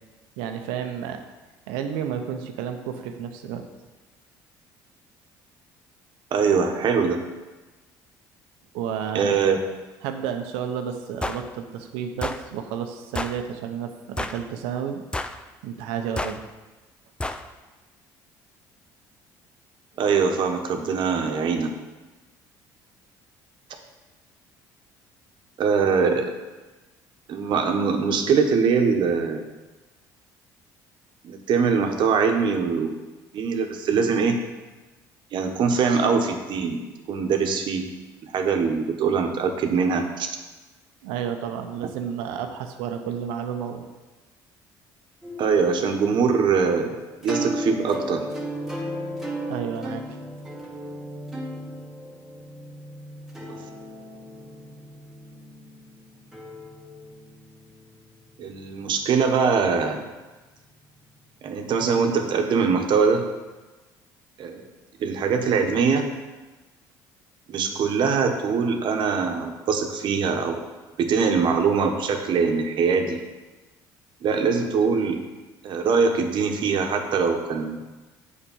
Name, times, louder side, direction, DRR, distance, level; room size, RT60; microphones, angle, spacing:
voice 1, 0.4-1.2 1.7-3.6 8.7-9.4 10.0-15.0 15.6-16.4 41.0-43.8 49.5-50.1, right 8 dB, 85° right, 6 dB, 0.8 m, -31 dB
voice 2, 6.3-7.2 9.1-9.6 20.0-21.7 25.6-26.3 27.3-29.5 31.2-32.9 33.3-34.4 35.3-36.8 37.1-37.8 38.2-40.3 45.4-47.0 47.2-48.2 58.4-60.0 61.4-63.2 64.4-64.6 65.0-66.1 67.5-70.6 71.0-73.2 74.2-75.2 75.6-77.8, right 5 dB, 60° right, 4 dB, 1.2 m, -22 dB
sound 1, 11.2-11.4 12.2-12.4 13.1-13.4 14.2-14.4 15.1-15.4 16.2-16.4 17.2-17.4, left 2 dB, 10° left, 0.5 m, -29 dB
sound 2, 47.0-59.2, right 1 dB, 5° right, 1.7 m, -36 dB
7.2 x 5.0 x 7.2 m, 1.2 s
supercardioid pair, 75°, 9 cm